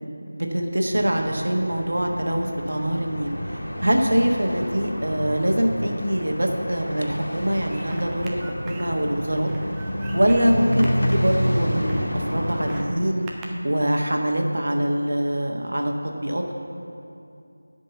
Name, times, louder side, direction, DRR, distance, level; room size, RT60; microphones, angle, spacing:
voice 1, 0.0-9.5 10.1-13.3 13.6-16.5, right 1 dB, 65° right, 2 dB, 1.3 m, -24 dB
sound 1, 0.9-12.8, equal, 80° left, 1.6 m, -29 dB
sound 2, 7.7-14.0, right 2 dB, 5° right, 0.3 m, -44 dB
11.0 x 5.3 x 7.0 m, 2.5 s
figure-of-eight pair, 180°, 0 cm